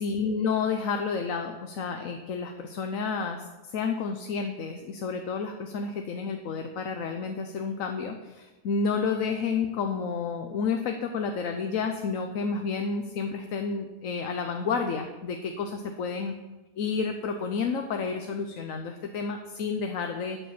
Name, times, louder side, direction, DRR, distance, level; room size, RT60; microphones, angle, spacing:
voice 1, 0.0-15.7 16.0-16.3 16.8-20.4, left 5 dB, 90° left, 5 dB, 1.2 m, -30 dB
12.0 x 5.8 x 7.2 m, 1.1 s
omnidirectional pair, 1.3 m